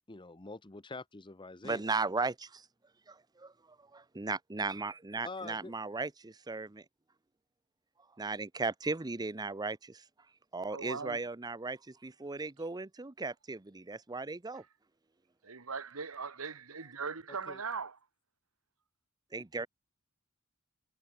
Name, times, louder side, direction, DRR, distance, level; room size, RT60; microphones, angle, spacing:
voice 1, 0.1-1.9 5.2-5.7 17.5-17.6, left 3 dB, 20° left, 1.0 m, -45 dB
voice 2, 1.6-2.6 3.1-3.5 3.9-6.8 8.2-10.0 10.5-14.6 19.3-19.7, right 3 dB, 20° right, 0.7 m, -36 dB
voice 3, 10.7-11.2 15.4-18.0, right 5 dB, 85° right, 1.7 m, -40 dB
head